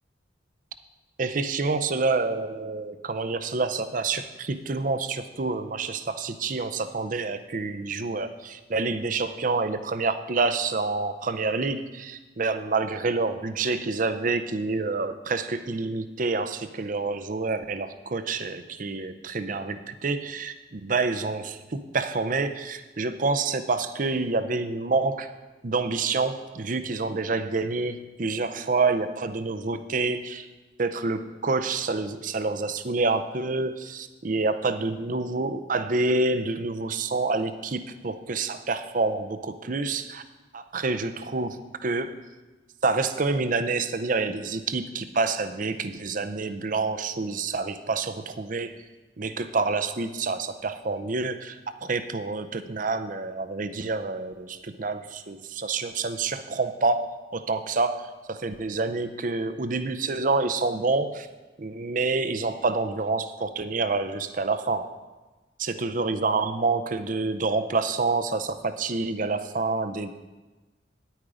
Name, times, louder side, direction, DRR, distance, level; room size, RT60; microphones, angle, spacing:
voice 1, 1.2-25.3 25.6-30.5 30.8-40.2 40.5-42.1 42.8-48.7 49.2-61.3 61.6-64.9 65.6-70.1, right 3 dB, 45° right, 11 dB, 0.6 m, -28 dB
10.0 x 8.9 x 4.9 m, 1.2 s
head